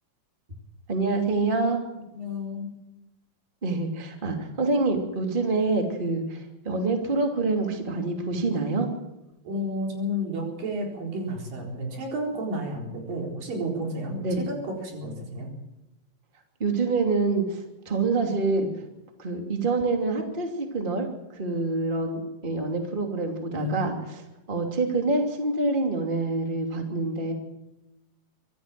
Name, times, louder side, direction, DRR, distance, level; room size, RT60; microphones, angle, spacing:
voice 1, 0.9-1.8 3.6-8.9 14.2-14.5 16.6-18.7 19.2-27.3, right 3 dB, 15° right, 3 dB, 2.6 m, -26 dB
voice 2, 2.1-2.7 9.4-15.5 23.5-23.7, equal, 75° right, 0 dB, 6.0 m, -31 dB
24.5 x 14.5 x 7.6 m, 0.97 s
omnidirectional pair, 4.0 m